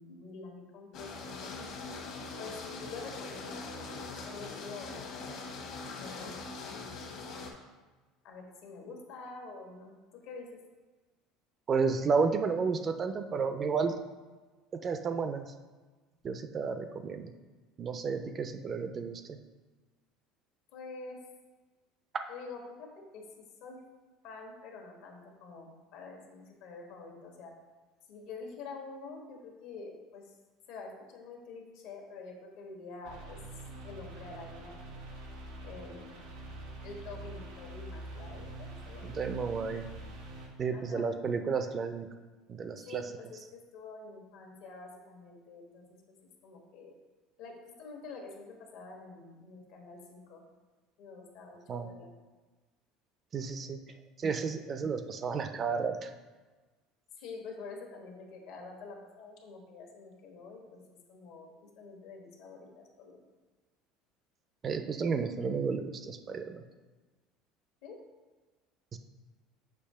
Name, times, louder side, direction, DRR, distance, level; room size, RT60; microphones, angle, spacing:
voice 1, 0.0-1.7 2.4-5.7 6.0-6.8 8.2-10.6 20.7-21.2 22.3-23.8 24.2-27.6 28.1-30.3 30.7-33.4 33.8-34.8 35.6-36.2 36.8-39.2 40.7-41.1 42.9-46.2 46.4-46.9 47.4-50.4 51.0-52.1 57.2-60.8 61.1-63.3 67.8-68.0, left 4 dB, 75° left, 1 dB, 1.4 m, -47 dB
sound 1, 0.9-7.5, left 3 dB, 55° left, 1.1 m, -42 dB
voice 2, 11.7-13.9 14.7-15.5 16.2-17.3 17.8-19.4 22.1-22.2 39.0-39.9 40.6-42.1 42.5-43.0 51.7-51.9 53.3-53.8 54.2-56.1 64.6-66.6 68.9-69.0, right 5 dB, 35° right, 8 dB, 0.4 m, -32 dB
sound 2, 33.0-40.5, right 2 dB, 90° right, 1.9 m, -45 dB
6.7 x 2.8 x 5.5 m, 1.3 s
supercardioid pair, 120°, 0 cm